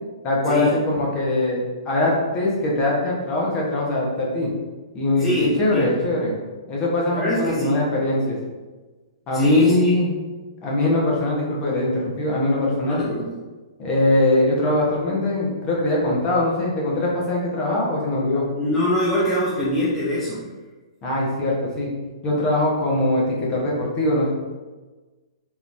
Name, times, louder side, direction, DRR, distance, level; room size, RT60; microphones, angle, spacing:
voice 1, 0.2-4.5 4.9-6.4 6.7-8.4 9.3-10.2 10.6-13.0 13.8-18.4 21.0-21.9 22.2-24.3, left 1 dB, 30° left, -4 dB, 1.1 m, -22 dB
voice 2, 5.2-5.9 7.1-7.8 9.3-9.9 12.9-13.3 18.6-20.4, left 2 dB, 10° left, -9 dB, 0.7 m, -23 dB
3.8 x 2.8 x 2.6 m, 1.3 s
hypercardioid pair, 135°, 3 cm